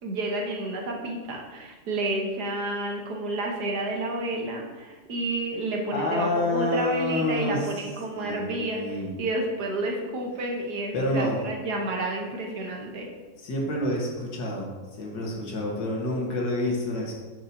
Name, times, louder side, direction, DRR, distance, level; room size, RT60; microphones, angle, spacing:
voice 1, 0.0-13.1, right 1 dB, 65° right, 1 dB, 1.6 m, -30 dB
voice 2, 5.9-7.9 8.2-9.1 10.9-11.4 13.4-17.1, left 1 dB, 85° left, -1 dB, 2.1 m, -28 dB
9.7 x 6.1 x 2.8 m, 1.3 s
omnidirectional pair, 1.9 m